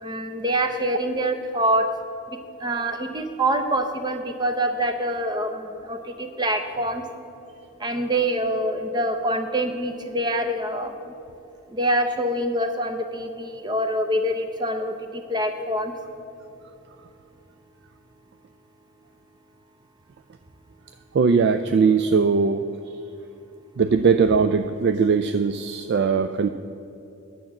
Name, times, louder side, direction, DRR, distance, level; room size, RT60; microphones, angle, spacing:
voice 1, 0.0-1.9 2.3-7.0 7.8-11.1 11.7-15.9, right 1 dB, 20° right, 7 dB, 0.6 m, -25 dB
voice 2, 21.1-22.7 23.8-26.5, right 5 dB, 50° right, 9 dB, 0.3 m, -20 dB
10.0 x 7.4 x 7.1 m, 2.7 s
head